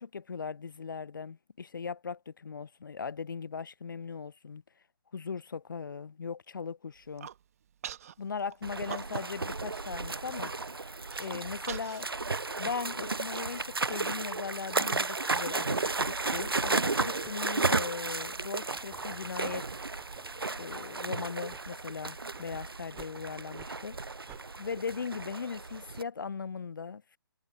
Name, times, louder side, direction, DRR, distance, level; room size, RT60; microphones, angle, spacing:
voice 1, 0.0-4.6 5.1-7.3 8.2-10.8 11.2-12.1 12.6-19.8 20.6-24.0 24.6-27.2, left 5 dB, 60° left, 0.5 m, -39 dB
Human voice, 7.0-7.4 7.8-8.1 8.5-9.4 9.7-9.8 10.2-10.5 11.1-13.9, right 9 dB, 40° right, 1.5 m, -44 dB
sound 1, 8.6-26.0, right 3 dB, 80° right, 0.7 m, -34 dB
sound 2, 17.0-20.4 20.9-21.1 21.5-21.7 22.3-22.5 23.0-23.2 23.5-23.7 24.3-24.5, right 14 dB, 15° right, 3.4 m, -54 dB
figure-of-eight pair, 140°, 12 cm